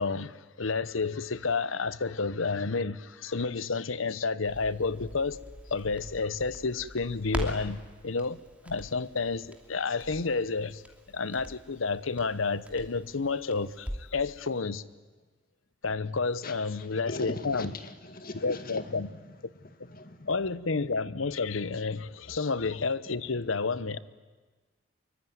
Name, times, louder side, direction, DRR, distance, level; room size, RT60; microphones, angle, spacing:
voice 1, 0.0-5.4 5.7-8.4 8.6-10.8 11.1-14.8 15.8-17.7 18.4-19.1 20.3-24.0, left 4 dB, 90° left, 0.9 m, -30 dB
Crackle, 4.5-14.3 14.6-14.7, equal, 5° right, 2.8 m, -43 dB
voice 2, 17.1-19.1 19.6-20.3, left 2 dB, 45° left, 2.0 m, -40 dB
25.0 x 24.0 x 9.5 m
head